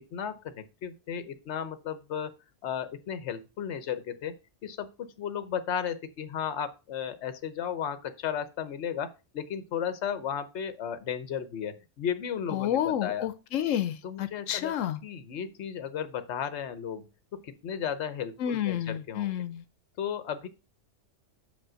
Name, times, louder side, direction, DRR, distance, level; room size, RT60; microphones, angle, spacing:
voice 1, 0.0-2.3 2.6-4.4 4.6-13.3 14.0-17.1 17.3-19.3 20.0-20.5, left 8 dB, 65° left, 12 dB, 1.1 m, -34 dB
voice 2, 12.5-15.0 18.4-19.6, left 10 dB, 90° left, 10 dB, 1.0 m, -30 dB
5.9 x 5.2 x 6.2 m, 0.29 s
omnidirectional pair, 1.3 m